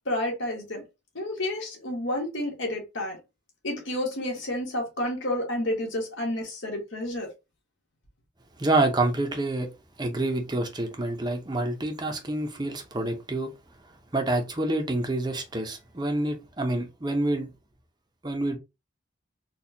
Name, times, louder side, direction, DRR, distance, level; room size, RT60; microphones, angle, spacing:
voice 1, 0.0-0.8 1.1-3.2 3.6-7.3, left 1 dB, 80° left, 1.6 m, -30 dB
voice 2, 8.6-9.7 10.0-13.5 14.1-17.5 18.2-18.6, right 2 dB, 20° right, 0.7 m, -27 dB
4.2 x 2.4 x 2.8 m
head